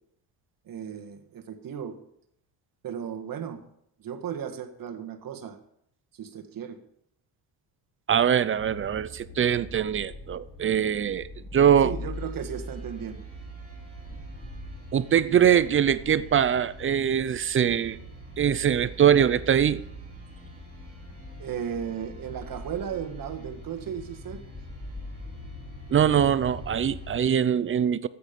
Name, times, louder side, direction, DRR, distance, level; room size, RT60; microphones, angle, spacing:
voice 1, 0.6-2.0 2.8-3.6 4.0-5.6 6.1-6.8 11.8-13.2 21.4-24.4, right 8 dB, 50° right, 1.6 m, -35 dB
voice 2, 8.1-11.9 14.9-18.0 18.4-19.8 25.9-28.1, right 9 dB, 30° right, 0.4 m, -22 dB
sound 1, 8.6-27.2, left 1 dB, 10° left, 3.2 m, -42 dB
sound 2, 12.1-27.1, right 3 dB, 15° right, 5.1 m, -54 dB
13.0 x 8.7 x 5.2 m
cardioid pair, 125°, 45 cm